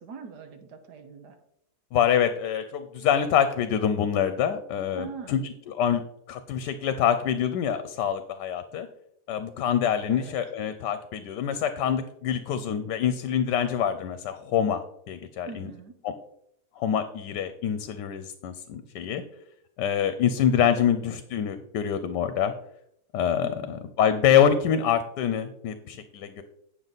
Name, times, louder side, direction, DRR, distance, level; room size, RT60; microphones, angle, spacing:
voice 1, 0.0-1.4 5.0-5.5 10.1-10.4 15.5-16.0 23.4-23.8, right 5 dB, 70° right, 5 dB, 1.7 m, -42 dB
voice 2, 1.9-8.9 9.3-14.8 15.1-15.7 16.0-16.1 16.8-19.2 19.8-22.5 23.1-26.4, left 9 dB, 80° left, 10 dB, 1.2 m, -25 dB
9.0 x 6.5 x 4.0 m, 0.73 s
omnidirectional pair, 1.8 m